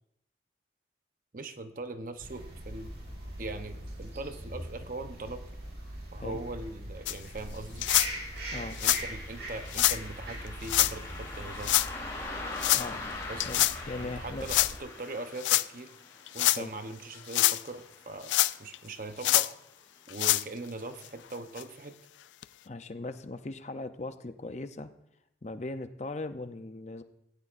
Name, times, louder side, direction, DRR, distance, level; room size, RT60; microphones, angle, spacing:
voice 1, 1.3-2.9 3.4-5.4 6.1-7.9 8.6-11.8 13.3-13.5 14.0-15.9 16.3-18.3 18.6-19.6 20.1-22.0, right 2 dB, 50° right, 8 dB, 0.9 m, -41 dB
sound 1, 2.2-14.8, right 1 dB, 70° right, 5.1 m, -42 dB
sound 2, 7.1-7.2 7.8-8.1 8.7-9.0 9.7-10.0 10.6-10.9 11.6-11.9 12.6-12.9 13.4-13.7 14.5-14.7 15.4-15.6 16.3-16.6 17.1-17.6 18.3-18.8 19.2-19.5 20.1-20.4 21.0-21.1 21.6-21.7 22.4-22.5, left 15 dB, 90° left, 0.4 m, -25 dB
Car passing by, 8.0-18.8 19.1-19.2 20.1-20.3 20.8-20.9 21.4-21.5, left 2 dB, 20° left, 3.3 m, -43 dB
voice 2, 13.5-14.5 16.5-16.7 22.7-24.9 25.4-27.0, left 2 dB, 40° left, 9 dB, 0.6 m, -39 dB
17.5 x 15.0 x 2.6 m, 0.81 s
head